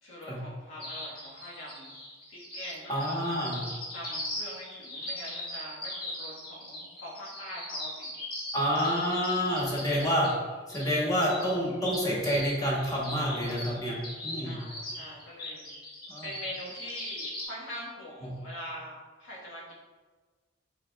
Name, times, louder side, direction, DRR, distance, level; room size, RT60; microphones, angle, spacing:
voice 1, 0.0-1.9 2.3-3.3 3.9-8.1 14.3-15.6 16.2-19.7, equal, 85° left, -5 dB, 1.4 m, -43 dB
sound 1, 0.8-17.4, left 1 dB, 50° left, 1.4 m, -40 dB
voice 2, 2.9-3.6 8.5-10.3 10.7-14.0 14.2-14.6 16.1-16.2 18.2-18.3, equal, 20° left, -5 dB, 1.0 m, -28 dB
4.9 x 4.1 x 2.3 m, 1.4 s
head